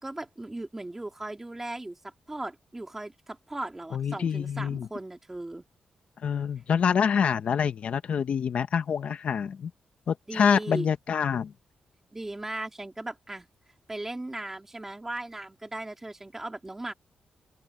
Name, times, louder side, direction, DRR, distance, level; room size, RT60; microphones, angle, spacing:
voice 1, 0.0-5.6 10.3-10.9 12.1-13.5 13.9-16.9, right 2 dB, 15° right, 2.6 m, -37 dB
voice 2, 3.9-4.9 6.2-9.7 10.1-11.5, left 7 dB, 60° left, 1.0 m, -26 dB
open air
wide cardioid pair, 140°, 2 cm